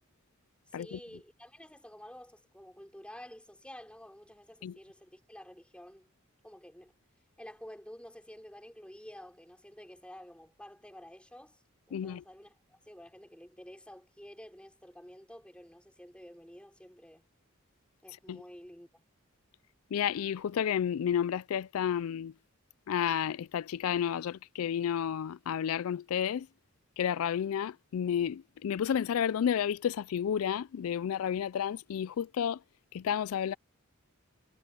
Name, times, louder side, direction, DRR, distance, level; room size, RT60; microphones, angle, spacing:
voice 1, 0.7-6.1 6.4-6.9 7.4-11.6 11.9-17.2 18.0-19.0, equal, 5° left, 4.2 m, -50 dB
voice 2, 11.9-12.2 18.3-18.4 19.9-22.3 22.9-26.5 27.0-32.6 32.9-33.5, left 8 dB, 85° left, 0.3 m, -31 dB
head